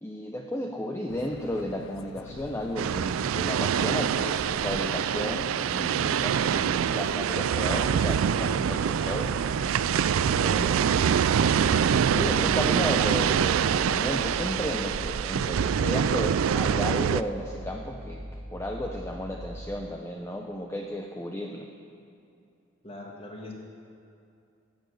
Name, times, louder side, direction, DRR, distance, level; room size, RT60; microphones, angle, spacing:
voice 1, 0.0-9.3 10.4-11.2 11.6-18.2 18.5-21.7, left 1 dB, 15° left, 1 dB, 0.6 m, -34 dB
sound 1, 1.1-11.7, left 5 dB, 75° left, 0.4 m, -46 dB
sound 2, 2.8-17.2, right 8 dB, 85° right, 0.3 m, -25 dB
sound 3, 7.6-19.7, equal, 65° right, 1.9 m, -41 dB
voice 2, 11.3-13.1 22.8-23.5, left 1 dB, 30° left, 0 dB, 1.7 m, -40 dB
16.5 x 7.9 x 6.5 m, 2.5 s
head